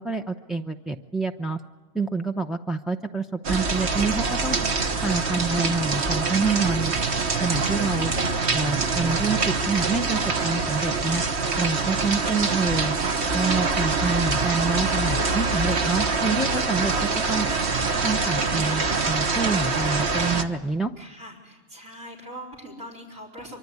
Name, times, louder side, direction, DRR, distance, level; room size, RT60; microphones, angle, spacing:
voice 1, 0.0-1.6 1.9-4.6 5.0-6.9 7.4-8.1 8.5-11.2 11.6-13.0 13.3-17.5 18.0-20.9, right 3 dB, ahead, 2 dB, 0.4 m, -27 dB
sound 1, 3.4-20.4, right 4 dB, 55° right, 1.6 m, -25 dB
voice 2, 21.0-23.6, equal, 70° right, 3 dB, 4.8 m, -42 dB
24.5 x 24.5 x 9.6 m, 1.2 s
omnidirectional pair, 1.4 m